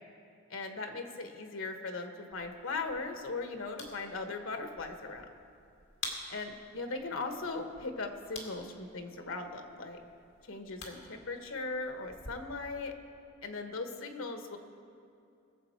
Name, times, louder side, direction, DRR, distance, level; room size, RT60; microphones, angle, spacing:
voice 1, 0.5-5.3 6.3-10.0 10.5-12.9 13.4-14.6, left 3 dB, 80° left, 5 dB, 1.2 m, -38 dB
sound 1, 2.3-12.3, left 3 dB, 60° left, 2.2 m, -49 dB
21.5 x 7.3 x 4.6 m, 2.6 s
head